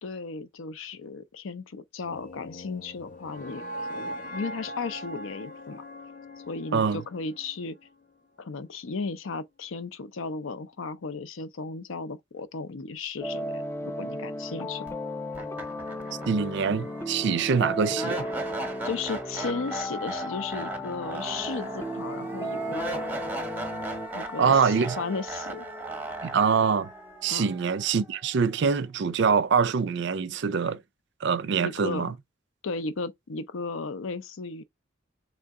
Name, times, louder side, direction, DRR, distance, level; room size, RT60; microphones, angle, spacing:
voice 1, 0.0-5.8 6.5-7.8 8.4-15.0 18.8-23.1 24.1-25.7 27.3-27.5 31.6-32.1 32.6-34.6, left 4 dB, 75° left, 0.5 m, -35 dB
sound 1, 2.0-8.1, equal, 40° left, 0.8 m, -41 dB
sound 2, 13.2-24.1, equal, 10° left, 0.3 m, -35 dB
sound 3, 14.9-15.0 15.3-28.4, right 1 dB, 10° right, 0.7 m, -37 dB
voice 2, 16.3-18.3 24.4-25.0 26.2-26.9 27.2-30.8 31.2-32.1, right 6 dB, 55° right, 0.4 m, -24 dB
3.8 x 3.3 x 3.5 m
head